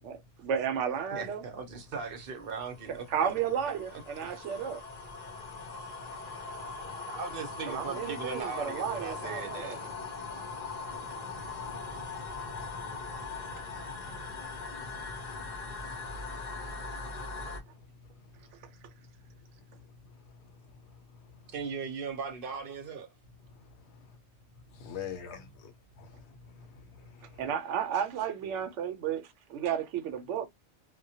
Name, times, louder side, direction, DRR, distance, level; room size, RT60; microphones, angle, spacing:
voice 1, 0.0-1.4 3.1-4.8 7.7-9.9 27.4-30.5, right 8 dB, 90° right, 0.9 m, -33 dB
voice 2, 1.1-3.3 3.9-4.3 6.8-9.8 21.5-23.1, right 5 dB, 55° right, 0.8 m, -39 dB
sound 1, 2.0-17.6, left 4 dB, 45° left, 0.6 m, -40 dB
voice 3, 5.2-6.2 6.7-7.0 10.3-10.5 10.7-12.2 13.2-13.3 14.0-16.5 16.7-18.2 20.1-21.2 23.5-23.9 24.7-27.4, left 7 dB, 70° left, 0.9 m, -50 dB
2.1 x 2.1 x 2.7 m
omnidirectional pair, 1.2 m